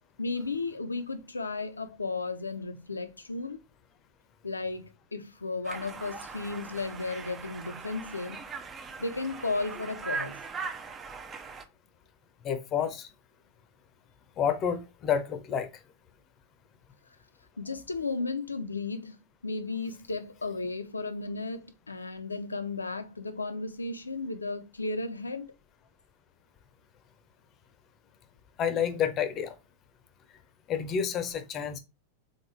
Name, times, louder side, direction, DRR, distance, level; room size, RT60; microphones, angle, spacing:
voice 1, 0.2-3.6 4.4-8.4 9.0-10.4 17.6-19.2 19.4-25.5, left 3 dB, 80° left, 0.6 m, -34 dB
Conversation, 5.6-11.6, right 5 dB, 20° right, 0.6 m, -40 dB
voice 2, 12.4-13.1 14.4-15.7 28.6-29.5 30.7-31.8, left 8 dB, 30° left, 0.7 m, -29 dB
3.8 x 3.6 x 3.2 m
figure-of-eight pair, 90°, 0 cm